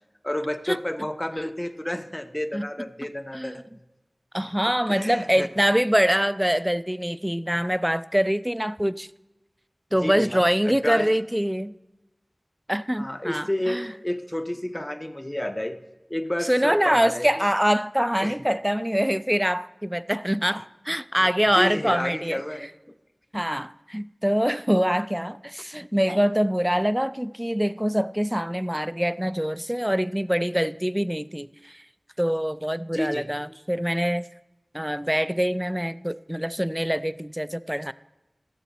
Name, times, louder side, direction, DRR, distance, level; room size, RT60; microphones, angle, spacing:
voice 1, 0.2-3.6 4.6-5.5 10.0-10.3 10.7-11.1 13.0-15.8 16.1-17.5 18.2-18.3 21.2-21.3 21.5-22.6 32.9-33.3, left 1 dB, 25° left, 0.7 m, -30 dB
voice 2, 4.3-9.1 9.9-11.8 12.7-13.9 16.5-22.4 23.3-31.8 32.2-34.3 34.7-37.9, equal, 10° right, 0.3 m, -24 dB
15.0 x 6.8 x 4.1 m
wide cardioid pair, 50°, 0 cm